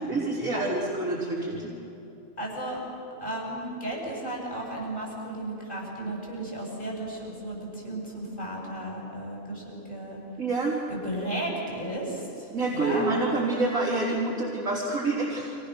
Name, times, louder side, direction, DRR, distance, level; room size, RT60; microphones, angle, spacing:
voice 1, 0.0-1.8 10.4-10.8 12.5-15.6, right 2 dB, 90° right, -5 dB, 3.9 m, -27 dB
voice 2, 2.4-2.8 3.2-10.2 10.9-12.5 12.7-13.1, right 1 dB, 35° left, -3 dB, 8.3 m, -34 dB
29.0 x 27.0 x 6.7 m, 2.7 s
omnidirectional pair, 1.4 m